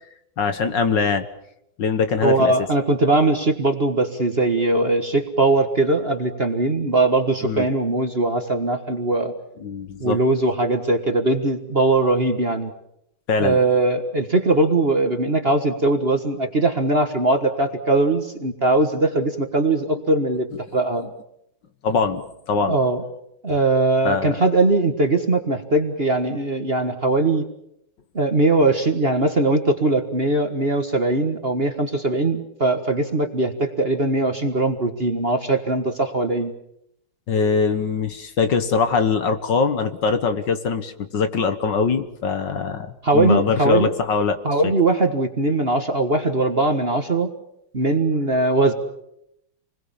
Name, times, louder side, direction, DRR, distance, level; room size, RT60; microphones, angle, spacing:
voice 1, 0.4-1.3 1.8-2.5 7.4-7.7 9.6-10.2 13.3-13.6 21.8-22.8 24.0-24.4 37.3-44.4 44.6-44.7, left 5 dB, 60° left, 9 dB, 1.9 m, -22 dB
voice 2, 2.2-9.3 10.0-12.7 13.4-20.5 20.7-21.0 22.7-23.0 23.4-27.4 28.1-36.5 43.0-43.9 44.4-47.3 47.7-48.7, right 2 dB, 30° right, 6 dB, 1.5 m, -20 dB
28.0 x 21.0 x 7.3 m, 0.78 s
omnidirectional pair, 2.4 m